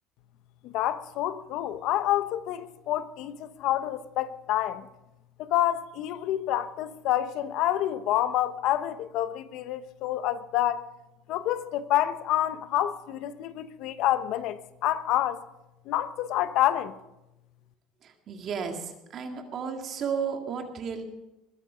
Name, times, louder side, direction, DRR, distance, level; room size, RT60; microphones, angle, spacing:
voice 1, 0.6-4.9 5.4-10.8 11.3-15.4 15.9-16.9, left 12 dB, 65° left, 0.9 m, -28 dB
voice 2, 18.0-21.0, right 6 dB, 45° right, 2.0 m, -33 dB
21.0 x 10.0 x 5.0 m
cardioid pair, 125°, 0 cm